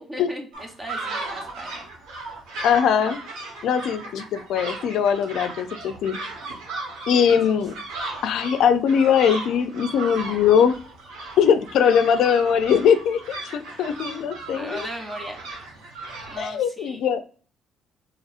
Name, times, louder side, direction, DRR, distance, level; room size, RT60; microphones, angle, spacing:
voice 1, 0.0-1.9 7.1-7.4 14.5-15.4 16.3-17.0, equal, 20° right, 3 dB, 1.0 m, -37 dB
sound 1, 0.5-16.5, right 2 dB, 90° right, 0.9 m, -36 dB
voice 2, 2.6-3.2 3.6-6.2 7.1-7.7 8.2-10.8 11.4-13.2 13.4-14.9 16.4-17.2, left 7 dB, 75° left, 9 dB, 0.4 m, -20 dB
4.0 x 2.9 x 2.4 m, 0.39 s
cardioid pair, 85°, 0 cm